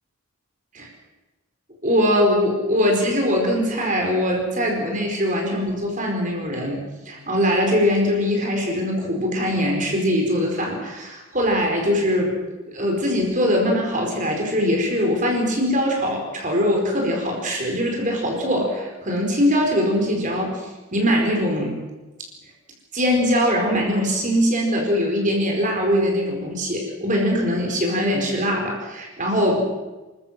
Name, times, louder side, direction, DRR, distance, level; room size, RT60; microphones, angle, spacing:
voice 1, 1.8-12.3 12.7-21.8 22.9-29.7, equal, 35° right, 1 dB, 4.7 m, -22 dB
28.0 x 14.0 x 7.7 m, 1.2 s
head